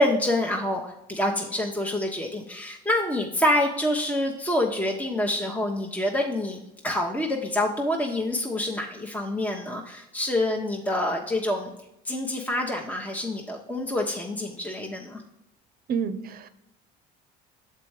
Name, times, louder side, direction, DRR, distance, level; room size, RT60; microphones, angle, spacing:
voice 1, 0.0-6.6 6.8-11.7 12.0-15.2, left 1 dB, 10° left, 1 dB, 0.9 m, -26 dB
voice 2, 15.9-16.5, right 6 dB, 50° right, 13 dB, 0.7 m, -29 dB
6.7 x 4.5 x 4.8 m, 0.87 s
supercardioid pair, 90°, 20 cm